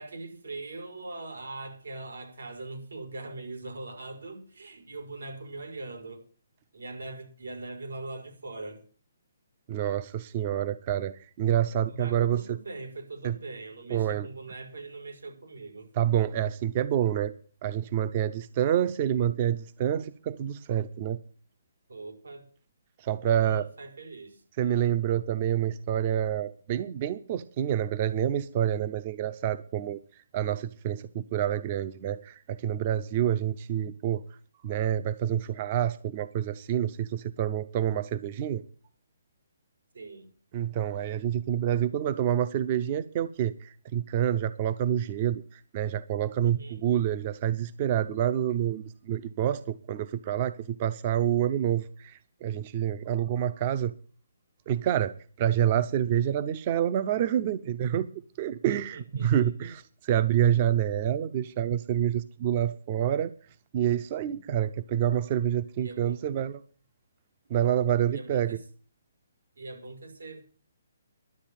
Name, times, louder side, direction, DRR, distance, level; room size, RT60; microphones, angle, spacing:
voice 1, 0.0-6.2 6.7-8.8 11.9-15.9 21.9-22.5 23.3-24.8 39.9-40.3 46.4-46.8 58.7-59.7 65.8-66.2 68.1-68.6 69.6-70.4, right 2 dB, 85° right, 5 dB, 5.3 m, -41 dB
voice 2, 9.7-12.6 13.2-13.4 13.9-14.3 16.0-17.3 17.6-21.2 23.0-23.7 24.6-30.0 30.3-34.2 34.6-38.6 40.5-53.9 54.7-55.1 55.4-58.1 58.4-63.3 63.7-66.6 67.5-68.6, right 10 dB, 30° right, 14 dB, 0.6 m, -27 dB
12.0 x 8.2 x 9.0 m, 0.42 s
hypercardioid pair, 160°, 0 cm